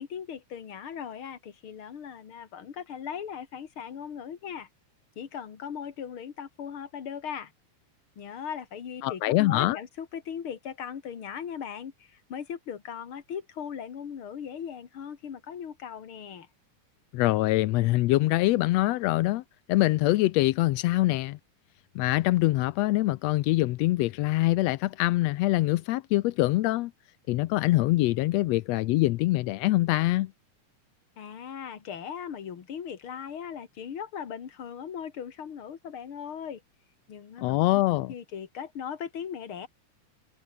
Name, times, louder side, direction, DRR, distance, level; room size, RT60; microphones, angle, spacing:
voice 1, 0.0-4.7 5.2-7.5 8.2-16.5 31.2-36.6 37.1-37.8 38.1-39.7, left 8 dB, 45° left, 2.6 m, -38 dB
voice 2, 9.0-9.8 17.1-19.4 19.7-21.4 22.0-26.9 27.3-30.3 37.4-38.1, left 18 dB, 80° left, 1.6 m, -24 dB
omnidirectional pair, 3.6 m